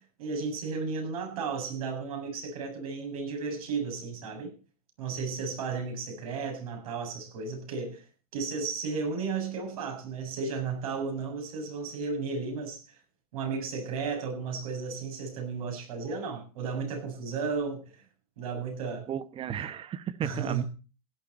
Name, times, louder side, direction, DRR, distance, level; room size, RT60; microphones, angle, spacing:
voice 1, 0.0-4.5 5.0-8.0 8.3-12.8 13.3-17.9 18.4-19.1 20.2-20.6, right 5 dB, 70° right, 7.5 m, -34 dB
voice 2, 19.1-20.6, right 8 dB, 30° right, 1.2 m, -34 dB
16.5 x 11.5 x 4.3 m
hypercardioid pair, 105°, 19 cm